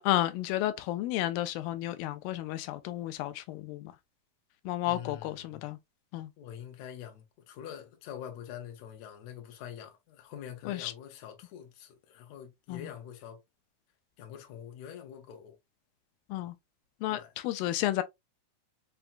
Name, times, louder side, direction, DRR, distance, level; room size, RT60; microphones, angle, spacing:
voice 1, 0.0-3.9 4.7-5.8 6.1-6.3 10.7-10.9 12.7-12.9 16.3-16.6 17.0-18.0, left 14 dB, 90° left, 2.3 m, -32 dB
voice 2, 4.9-5.6 6.4-13.4 14.2-15.6 17.1-17.3, left 9 dB, 65° left, 1.8 m, -45 dB
5.9 x 2.2 x 2.4 m
omnidirectional pair, 4.0 m